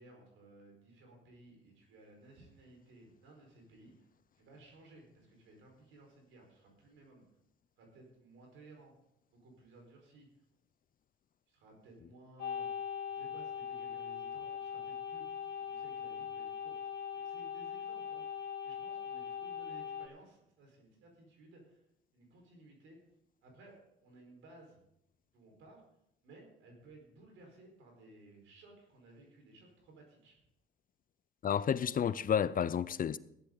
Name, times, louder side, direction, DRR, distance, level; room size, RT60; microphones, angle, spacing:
voice 1, 0.0-4.1 4.3-7.2 7.8-8.9 9.3-10.3 11.5-16.8 17.1-21.8 22.1-23.0 23.4-23.7 24.0-24.8 25.3-25.8 26.2-30.4, right 2 dB, 85° right, 4.9 m, -58 dB
sound 1, 12.4-20.1, left 8 dB, 60° left, 2.4 m, -41 dB
voice 2, 31.4-33.2, left 8 dB, 45° left, 0.5 m, -31 dB
15.5 x 11.5 x 4.0 m
cardioid pair, 90°, 20 cm